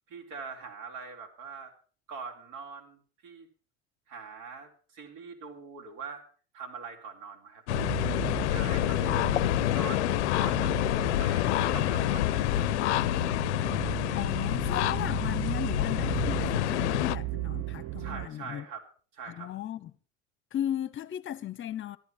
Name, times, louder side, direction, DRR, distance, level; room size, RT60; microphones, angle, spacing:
voice 1, 0.1-1.7 2.1-3.5 4.1-6.2 6.5-7.6 8.5-9.4 9.7-10.7 11.1-13.6 18.0-18.9 19.1-19.5, right 5 dB, 60° right, 4.0 m, -43 dB
sound 1, 7.7-17.2, left 16 dB, 80° left, 0.5 m, -27 dB
sound 2, 7.7-18.3, right 18 dB, 45° right, 0.9 m, -36 dB
voice 2, 14.1-18.6 19.3-19.9 20.5-22.0, left 11 dB, 35° left, 1.1 m, -36 dB
14.0 x 11.5 x 5.8 m
hypercardioid pair, 85°, 34 cm